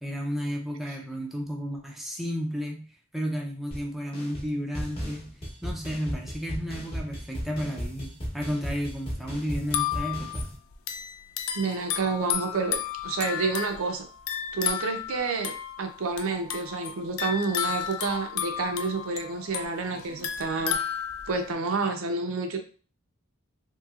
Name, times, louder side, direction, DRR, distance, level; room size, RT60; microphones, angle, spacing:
voice 1, 0.0-2.9 3.1-5.3 5.6-10.5, equal, ahead, 0 dB, 0.4 m, -32 dB
sound 1, 3.7-3.8 4.1-4.5 4.7-10.6, equal, 25° left, 0.8 m, -36 dB
sound 2, 9.6-21.5, left 9 dB, 70° left, 0.4 m, -33 dB
voice 2, 11.5-14.0 14.5-20.8 21.3-22.6, right 4 dB, 65° right, 5 dB, 0.5 m, -29 dB
3.0 x 2.7 x 2.3 m, 0.40 s
head